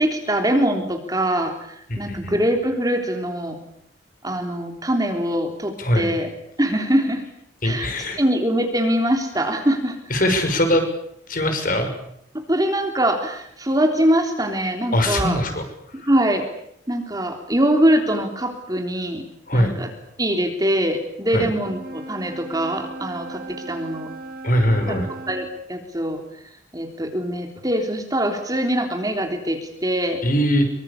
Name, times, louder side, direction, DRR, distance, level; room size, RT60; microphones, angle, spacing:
voice 1, 0.0-3.6 4.2-6.3 6.6-7.2 7.6-7.9 8.2-10.0 12.5-15.4 15.9-16.4 16.9-19.2 19.5-19.9 20.2-24.1 24.9-25.0 25.3-26.2 26.7-30.2, right 1 dB, 20° right, 4 dB, 3.4 m, -23 dB
voice 2, 1.9-2.4 5.8-6.1 7.6-8.2 10.1-10.9 11.3-11.9 14.9-15.6 16.0-16.1 19.5-19.7 21.3-21.5 24.4-25.1 30.2-30.7, equal, 45° left, 6 dB, 5.8 m, -21 dB
Wind instrument woodwind instrument, 21.6-25.5, right 2 dB, 50° right, 4.2 m, -37 dB
25.5 x 24.0 x 8.5 m, 0.73 s
head